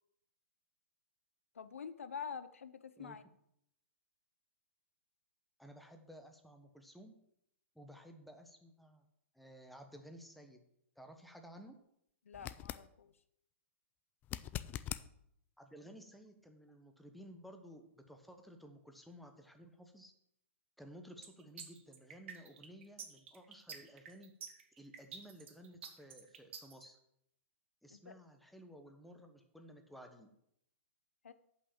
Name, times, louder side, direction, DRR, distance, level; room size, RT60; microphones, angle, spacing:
voice 1, 1.5-3.2 12.2-13.2 27.9-28.2 31.2-31.3, left 6 dB, 85° left, 13 dB, 0.7 m, -47 dB
voice 2, 5.6-7.1 7.7-9.1 9.3-10.6 11.0-11.7 15.6-20.1 20.8-24.3 24.8-27.0 27.8-30.3, equal, ahead, 5 dB, 1.1 m, -55 dB
sound 1, 12.3-12.9 14.2-15.1 18.1-18.2, left 12 dB, 25° left, 0.4 m, -42 dB
sound 2, 21.2-26.8, right 7 dB, 65° right, 1.9 m, -49 dB
8.2 x 5.7 x 7.3 m, 0.76 s
hypercardioid pair, 125°, 7 cm